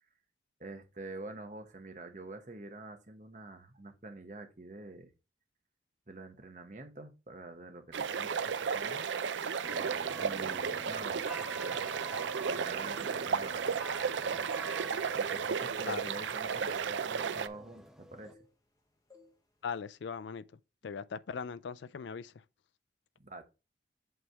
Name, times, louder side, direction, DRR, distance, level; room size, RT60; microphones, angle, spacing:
voice 1, 0.6-5.1 6.1-9.1 10.1-11.8 12.4-14.8 15.1-18.4 23.2-23.4, right 2 dB, 40° right, 1.1 m, -47 dB
sound 1, 7.9-17.5, right 6 dB, 80° right, 0.5 m, -34 dB
sound 2, 9.6-18.3, equal, 5° right, 0.4 m, -49 dB
sound 3, 10.7-11.7 12.0-12.4 12.8-13.0 13.6-13.8 14.1-17.9 18.2-18.8 19.1-19.4 19.7-19.9, left 4 dB, 20° left, 1.1 m, -62 dB
voice 2, 19.6-20.4 20.8-22.3, left 6 dB, 75° left, 0.4 m, -39 dB
8.0 x 3.4 x 4.6 m
head